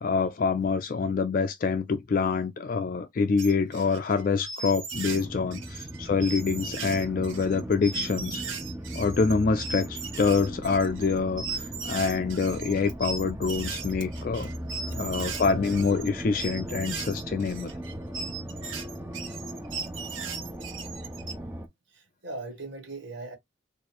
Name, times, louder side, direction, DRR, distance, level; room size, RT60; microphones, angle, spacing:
voice 1, 0.0-8.4 8.9-14.5 14.9-17.7, left 5 dB, 45° left, 0.3 m, -26 dB
sound 1, 3.4-5.2 5.5-21.3, right 5 dB, 80° right, 1.1 m, -38 dB
sound 2, 4.9-21.7, right 1 dB, 10° right, 0.5 m, -38 dB
voice 2, 21.9-23.4, right 2 dB, 65° right, 1.4 m, -40 dB
4.2 x 2.5 x 3.0 m
head